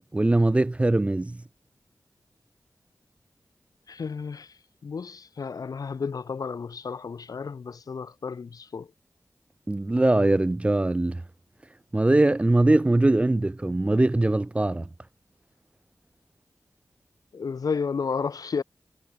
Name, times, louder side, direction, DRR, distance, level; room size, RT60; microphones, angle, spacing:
voice 1, 0.1-1.4 9.7-11.2 11.9-14.8, right 2 dB, 20° right, 0.3 m, -21 dB
voice 2, 3.9-8.9 17.3-18.6, left 5 dB, 80° left, 1.4 m, -32 dB
wide cardioid pair, 60°, 6 cm